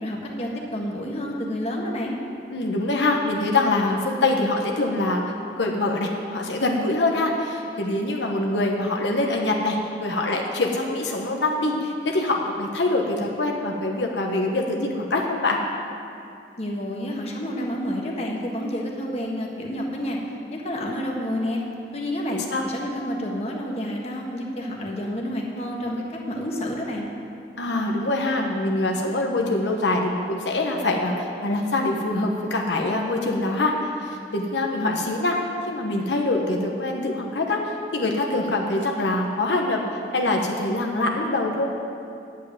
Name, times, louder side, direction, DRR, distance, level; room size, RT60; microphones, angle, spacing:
voice 1, 0.0-2.2 16.6-20.2 20.5-21.6 21.9-27.1, equal, 35° left, -1 dB, 1.5 m, -29 dB
voice 2, 2.5-5.2 5.6-15.6 22.3-22.6 27.6-35.4 35.7-41.7, left 2 dB, 85° left, 1 dB, 1.2 m, -24 dB
9.2 x 8.2 x 9.1 m, 2.6 s
head